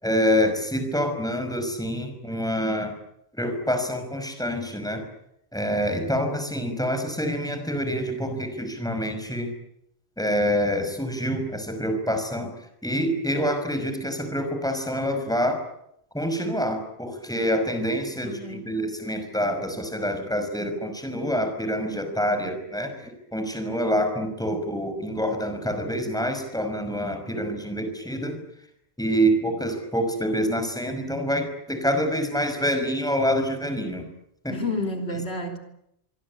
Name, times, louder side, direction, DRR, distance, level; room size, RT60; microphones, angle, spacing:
voice 1, 0.0-3.0 3.3-5.1 5.5-9.5 10.2-12.5 12.8-15.6 16.1-28.4 29.0-34.1 34.4-34.5, equal, 5° left, 6 dB, 5.5 m, -26 dB
voice 2, 18.2-18.8 22.0-22.6 27.3-27.5 29.1-29.6 34.5-35.6, left 2 dB, 80° left, 4 dB, 3.8 m, -33 dB
25.0 x 25.0 x 8.7 m, 0.77 s
omnidirectional pair, 1.1 m